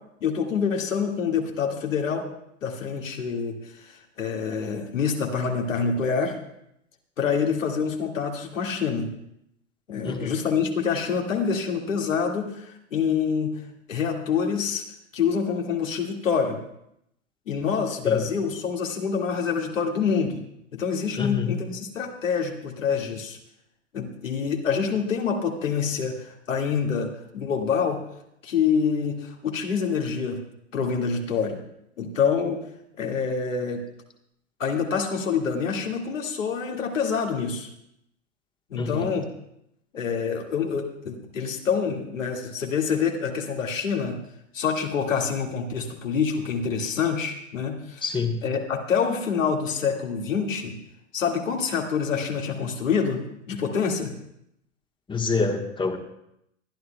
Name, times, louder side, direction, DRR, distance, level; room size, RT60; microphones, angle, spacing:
voice 1, 0.2-2.2 2.6-6.3 7.2-9.1 9.9-13.6 13.9-14.8 15.1-16.6 17.5-20.4 20.7-23.4 23.9-28.0 28.4-30.4 30.7-31.6 32.0-32.6 33.0-33.8 34.6-37.7 38.7-39.3 39.9-44.2 44.5-48.0 48.4-50.8 51.1-54.1, left 6 dB, 80° left, 2 dB, 2.1 m, -26 dB
voice 2, 10.0-10.4 18.0-18.2 21.2-21.5 38.8-39.1 48.0-48.4 55.1-56.0, left 4 dB, 10° left, 4 dB, 1.3 m, -27 dB
22.0 x 11.5 x 2.3 m, 0.77 s
hypercardioid pair, 100°, 38 cm